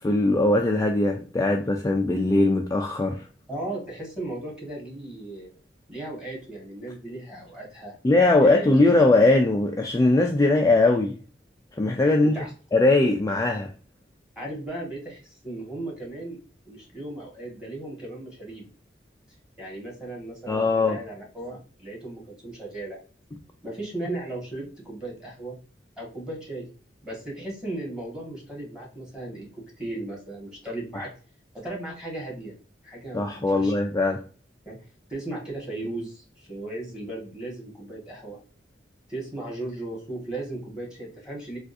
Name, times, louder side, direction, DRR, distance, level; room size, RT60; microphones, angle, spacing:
voice 1, 0.0-3.3 8.0-11.2 11.8-12.4 12.7-13.7 20.5-21.0 33.1-34.2, left 2 dB, 20° left, 0.3 m, -20 dB
voice 2, 3.5-5.5 5.9-7.9 8.4-8.7 12.2-12.5 14.3-16.4 16.6-18.7 19.6-23.0 23.6-25.5 26.0-26.7 27.0-29.5 29.8-31.1 31.5-32.5 32.8-33.7 34.6-34.8 35.1-38.4 39.1-41.6, right 2 dB, 5° right, 1.5 m, -36 dB
3.5 x 2.4 x 2.5 m
head